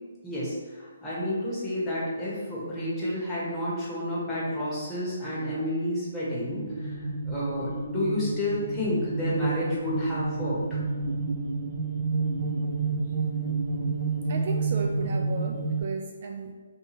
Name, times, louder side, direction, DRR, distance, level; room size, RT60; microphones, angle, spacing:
voice 1, 0.2-10.8, left 1 dB, 10° left, -9 dB, 1.1 m, -30 dB
sound 1, 6.4-15.8, right 4 dB, 80° right, 0.7 m, -30 dB
voice 2, 14.3-16.5, right 4 dB, 45° right, 2 dB, 0.3 m, -35 dB
2.8 x 2.4 x 4.2 m, 1.4 s
hypercardioid pair, 155°, 0 cm